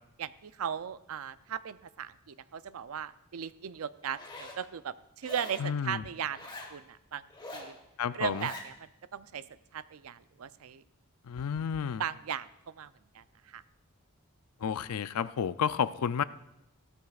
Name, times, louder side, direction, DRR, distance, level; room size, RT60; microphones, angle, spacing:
voice 1, 0.2-7.3 7.5-7.8 8.1-8.7 9.1-9.4 9.7-10.8 12.0-13.6, right 8 dB, 70° right, 15 dB, 0.4 m, -38 dB
Zipper (clothing), 4.0-4.6 5.2-5.7 6.3-6.7 7.3-7.7 8.2-8.7, left 2 dB, 20° left, 1.4 m, -44 dB
voice 2, 5.6-6.1 8.0-8.5 11.3-12.0 14.6-16.2, left 7 dB, 85° left, 15 dB, 0.4 m, -31 dB
16.5 x 13.0 x 2.4 m, 0.87 s
head